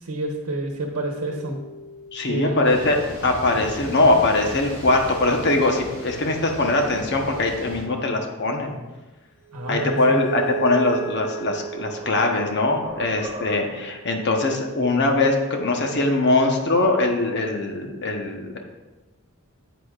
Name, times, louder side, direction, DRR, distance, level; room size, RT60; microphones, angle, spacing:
voice 1, 0.0-1.6 2.2-2.7 9.5-10.2, right 1 dB, 80° right, 2 dB, 1.0 m, -28 dB
sound 1, 1.0-3.9 9.4-14.4, right 7 dB, 5° left, 2.8 m, -36 dB
voice 2, 2.1-8.8 9.7-18.6, left 2 dB, 50° left, 3 dB, 1.0 m, -22 dB
sound 2, 2.6-7.8, equal, 25° left, 1.8 m, -37 dB
sound 3, 11.3-13.9, equal, 25° right, 2.1 m, -39 dB
9.9 x 8.2 x 2.5 m, 1.2 s
head